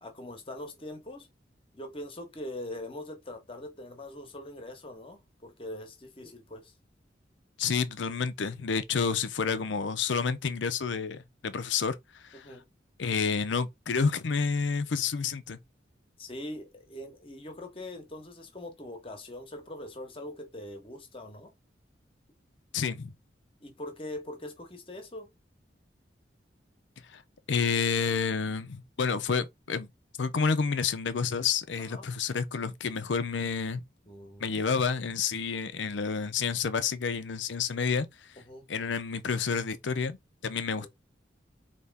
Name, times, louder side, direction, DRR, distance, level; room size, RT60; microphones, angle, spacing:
voice 1, 0.0-1.3 1.7-6.7 12.3-12.6 16.2-21.5 23.6-25.3 31.8-32.1 34.0-34.6 38.4-38.7 40.8-40.9, left 1 dB, 30° left, 1.0 m, -42 dB
voice 2, 7.6-12.5 13.0-15.6 22.7-23.1 27.1-27.2 27.5-29.9 30.2-33.8 34.4-38.1 38.7-40.2 40.4-40.9, left 5 dB, 90° left, 0.6 m, -29 dB
4.2 x 3.0 x 3.4 m
head